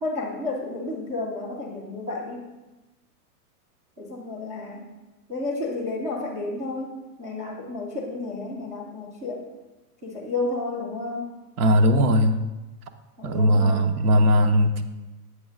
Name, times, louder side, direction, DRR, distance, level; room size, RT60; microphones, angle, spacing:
voice 1, 0.0-2.5 4.0-4.9 5.3-6.9 7.2-9.4 10.0-11.3 13.2-13.9, left 2 dB, 20° right, -5 dB, 0.4 m, -31 dB
voice 2, 11.6-12.4 13.2-14.8, equal, 70° right, 7 dB, 0.8 m, -19 dB
7.9 x 3.2 x 6.0 m, 1.1 s
supercardioid pair, 175°, 45 cm